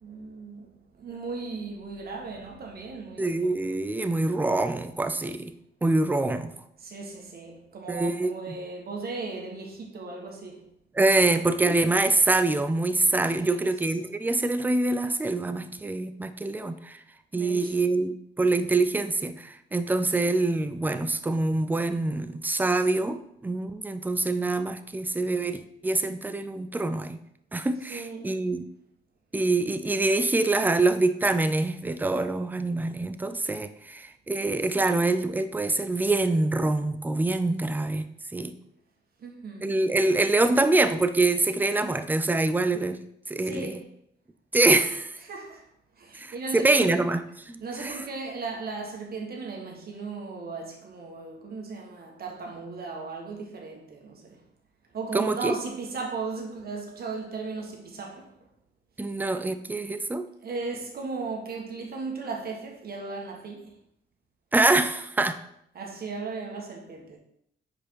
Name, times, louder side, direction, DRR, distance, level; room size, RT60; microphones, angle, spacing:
voice 1, 0.0-3.4 6.8-10.7 13.4-14.1 17.3-17.7 27.9-28.3 39.2-39.9 43.4-43.9 45.2-45.6 46.0-47.0 47.6-54.4 54.9-58.3 60.4-63.7 65.7-67.2, right 4 dB, 50° right, 1.5 m, -36 dB
voice 2, 3.2-5.5 5.8-6.5 7.9-8.6 10.9-17.0 17.3-27.2 27.5-28.7 29.3-38.5 39.6-43.0 43.3-43.8 44.5-45.2 46.1-48.0 55.1-55.5 59.0-60.2 64.5-65.4, right 2 dB, 10° right, 0.4 m, -25 dB
5.0 x 4.5 x 4.6 m
cardioid pair, 90°, 20 cm